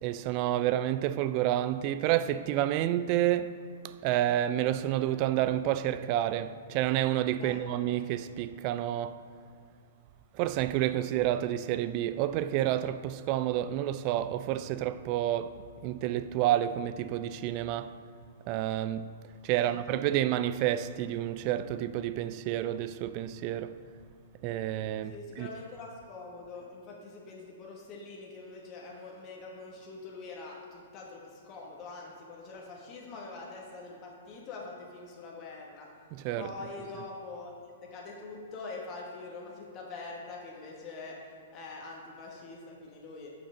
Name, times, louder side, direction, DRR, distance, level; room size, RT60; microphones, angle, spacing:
voice 1, 0.0-9.2 10.3-17.9 18.5-19.1 19.4-23.8 24.4-25.5 36.1-36.5, right 12 dB, 40° right, 0.3 m, -29 dB
voice 2, 25.1-35.9 36.4-37.5 37.8-43.3, left 3 dB, 35° left, 1.4 m, -44 dB
6.3 x 5.9 x 5.0 m
hypercardioid pair, 120°, 0 cm